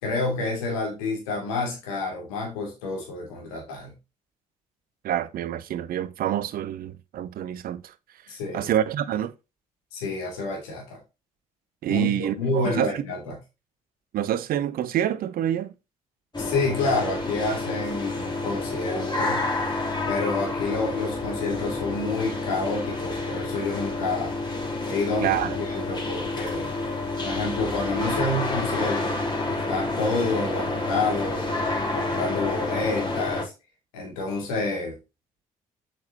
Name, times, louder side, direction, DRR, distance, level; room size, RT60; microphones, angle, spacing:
voice 1, 0.0-3.9 8.3-8.7 9.9-11.0 11.9-13.4 16.4-19.5 20.1-24.3 24.9-26.7 27.2-29.2 29.5-31.4 31.9-33.5 33.9-35.0, left 3 dB, 80° left, 3.0 m, -28 dB
voice 2, 5.0-7.8 8.5-9.3 11.8-13.0 14.1-15.7 25.2-25.6, right 11 dB, 55° right, 0.8 m, -27 dB
sound 1, 16.3-33.4, left 2 dB, 25° left, 3.4 m, -29 dB
8.4 x 6.3 x 2.9 m
hypercardioid pair, 45°, 18 cm